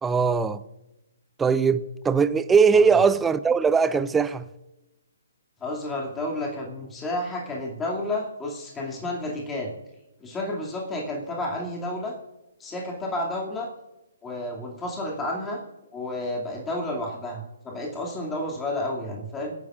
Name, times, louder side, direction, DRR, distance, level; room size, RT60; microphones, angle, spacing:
voice 1, 0.0-0.6 1.4-4.5, right 5 dB, 10° right, 0.5 m, -20 dB
voice 2, 5.6-9.7 10.2-12.1 12.6-13.7 14.2-15.6 15.9-19.5, left 1 dB, 15° left, 2.4 m, -31 dB
24.5 x 9.4 x 2.5 m
figure-of-eight pair, 130°, 0 cm